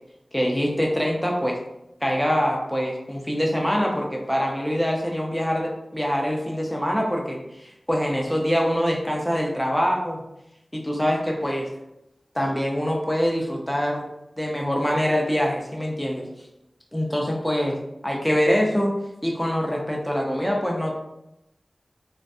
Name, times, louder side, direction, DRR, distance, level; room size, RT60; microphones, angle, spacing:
voice 1, 0.3-1.6 2.0-10.2 10.7-11.7 12.3-14.1 14.4-16.3 16.9-18.9 19.2-20.9, equal, 5° left, -1 dB, 0.4 m, -24 dB
2.4 x 2.2 x 2.5 m, 0.87 s
wide cardioid pair, 55°, 0 cm